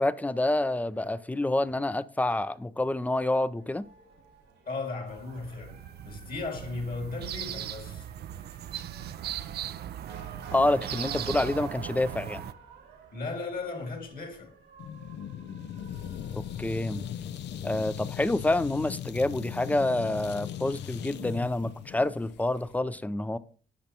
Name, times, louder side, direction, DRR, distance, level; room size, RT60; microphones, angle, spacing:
voice 1, 0.0-3.8 10.5-12.4 16.3-17.0 17.6-23.4, left 2 dB, 10° left, 0.4 m, -28 dB
Motor vehicle (road) / Siren, 3.6-17.1, right 5 dB, 80° right, 1.7 m, -49 dB
voice 2, 4.7-8.1 13.1-14.5, left 3 dB, 50° left, 2.1 m, -36 dB
sound 1, 5.1-12.5, right 11 dB, 60° right, 0.4 m, -38 dB
sound 2, 14.8-22.8, left 9 dB, 70° left, 0.5 m, -39 dB
8.5 x 5.9 x 2.8 m
supercardioid pair, 60°, 19 cm